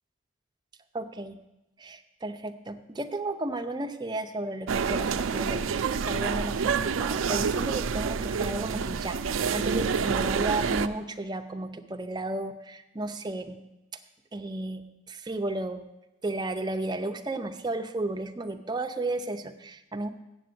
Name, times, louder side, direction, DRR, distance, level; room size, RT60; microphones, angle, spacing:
voice 1, 0.9-1.4 1.8-13.6 14.3-15.8 16.2-20.1, right 2 dB, 20° right, 6 dB, 0.6 m, -33 dB
sound 1, 4.7-10.9, right 6 dB, 90° right, 0.4 m, -28 dB
8.0 x 7.7 x 7.7 m, 0.96 s
head